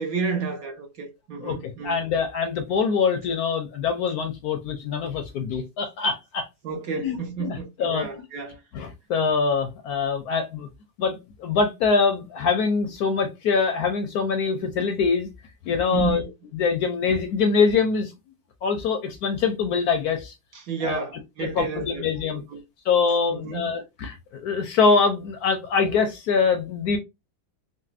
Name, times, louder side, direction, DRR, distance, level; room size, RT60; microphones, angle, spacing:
voice 1, 0.0-2.0 6.6-8.6 15.9-16.2 20.5-22.1 22.5-22.6 23.3-23.7, right 4 dB, 60° right, 1.1 m, -31 dB
voice 2, 1.4-6.5 6.9-8.1 8.7-10.7 11.0-15.3 15.6-16.2 16.5-18.1 18.6-20.3 20.8-21.0 21.4-22.4 22.8-27.0, left 5 dB, 70° left, 0.9 m, -24 dB
4.0 x 2.1 x 2.4 m
omnidirectional pair, 1.9 m